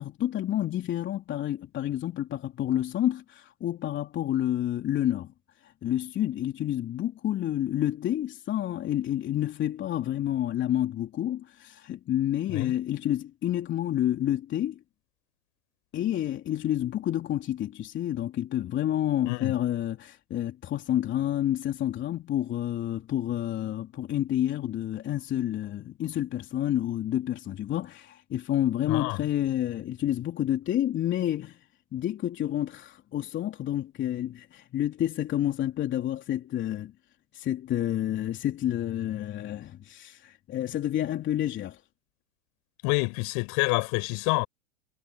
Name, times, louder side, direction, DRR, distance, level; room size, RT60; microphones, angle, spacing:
voice 1, 0.0-5.3 5.6-14.8 15.9-31.6 31.9-36.9 37.3-41.8, left 12 dB, 30° left, 3.3 m, -29 dB
voice 2, 28.9-29.2 42.8-44.5, left 30 dB, 45° left, 7.4 m, -27 dB
hypercardioid pair, 115°, 41 cm